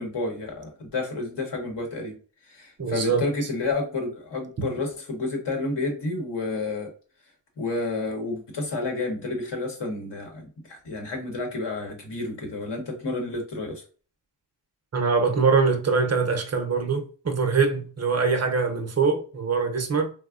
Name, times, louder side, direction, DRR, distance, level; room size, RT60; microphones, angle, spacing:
voice 1, 0.0-2.2 2.5-6.9 7.6-13.8, left 3 dB, 65° left, 0.9 m, -30 dB
voice 2, 2.8-3.3 14.9-20.1, right 5 dB, 35° right, 0.5 m, -23 dB
3.3 x 2.0 x 2.3 m
wide cardioid pair, 140°, 44 cm